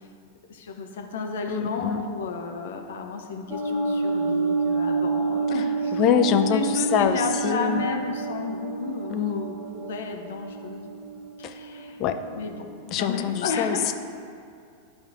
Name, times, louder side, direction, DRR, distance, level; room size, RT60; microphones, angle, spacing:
voice 1, 0.5-6.0 6.3-10.9 11.4-12.0 12.3-12.7 13.0-13.9, left 4 dB, 60° left, 2 dB, 0.9 m, -32 dB
voice 2, 1.5-2.0 6.0-6.6 6.9-7.2 7.4-7.9 9.1-9.4 12.0-12.2 12.9-13.9, left 8 dB, 35° left, 7 dB, 0.5 m, -24 dB
sound 1, 3.5-12.5, right 4 dB, 45° right, 0.9 m, -29 dB
12.5 x 4.3 x 2.5 m, 2.4 s
figure-of-eight pair, 90°, 0 cm